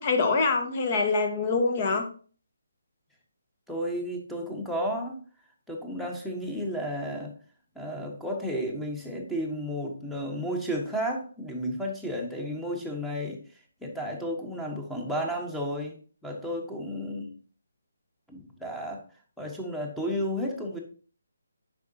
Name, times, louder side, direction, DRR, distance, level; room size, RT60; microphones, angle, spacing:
voice 1, 0.0-2.1, left 4 dB, 35° left, 5 dB, 1.2 m, -25 dB
voice 2, 3.7-5.2 5.7-7.3 7.7-13.4 13.8-16.0 16.2-17.3 18.3-19.0 19.4-20.8, equal, ahead, 0 dB, 1.1 m, -32 dB
8.2 x 5.9 x 2.8 m, 0.41 s
figure-of-eight pair, 150°, 0 cm